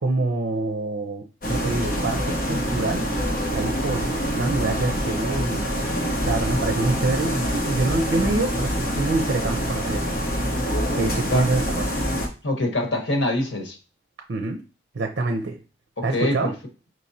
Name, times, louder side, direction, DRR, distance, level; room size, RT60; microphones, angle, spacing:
voice 1, 0.0-3.0 3.5-4.1 4.4-5.7 6.2-10.0 11.0-11.8 14.3-14.6 14.9-15.6 16.0-16.5, right 2 dB, 75° right, 0.6 m, -26 dB
sound 1, 1.4-12.3, equal, 50° left, 1.0 m, -25 dB
voice 2, 12.4-13.8 16.0-16.5, left 1 dB, 85° left, 1.1 m, -24 dB
5.1 x 3.1 x 2.7 m
head